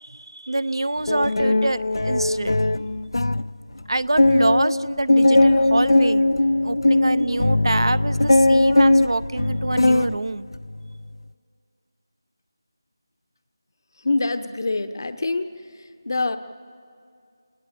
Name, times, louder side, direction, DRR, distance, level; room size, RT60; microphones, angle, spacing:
voice 1, 0.0-2.6 3.9-6.2 6.6-10.5, right 2 dB, 80° right, 16 dB, 0.7 m, -25 dB
sound 1, 1.1-3.5 3.8-3.9 4.2-10.2 10.5-10.9, left 2 dB, 80° left, 0.6 m, -19 dB
voice 2, 14.0-15.5 16.1-16.4, left 3 dB, 55° left, 10 dB, 1.0 m, -24 dB
29.0 x 20.0 x 8.4 m, 2.3 s
figure-of-eight pair, 170°, 2 cm